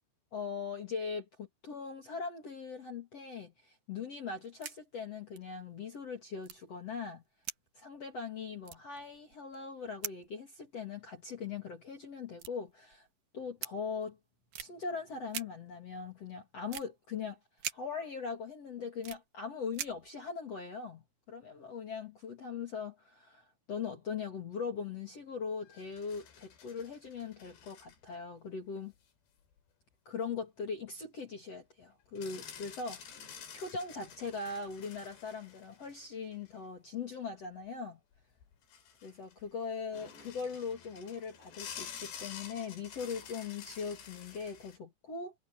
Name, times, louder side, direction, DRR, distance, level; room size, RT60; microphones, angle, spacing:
voice 1, 0.3-7.2 7.7-13.1 13.3-14.2 14.6-17.4 17.7-28.9 30.0-38.0 39.0-45.3, left 5 dB, 40° left, 3.2 m, -40 dB
sound 1, 4.2-4.8 5.1-5.2 5.3-5.5 6.4-7.0 7.4-8.3 8.6-9.7 10.0-10.3 11.4-11.5 12.3-13.1 13.6-13.7 14.5-14.7 15.3-15.5 16.7-16.9 17.6-17.8 18.4-19.2 19.7-20.1, right 10 dB, 65° right, 2.6 m, -42 dB
sound 2, 25.6-28.1 28.8-28.9 32.2-36.6 38.1-38.2 38.4-39.5 39.9-44.8, left 8 dB, 70° left, 5.2 m, -50 dB
omnidirectional pair, 5.1 m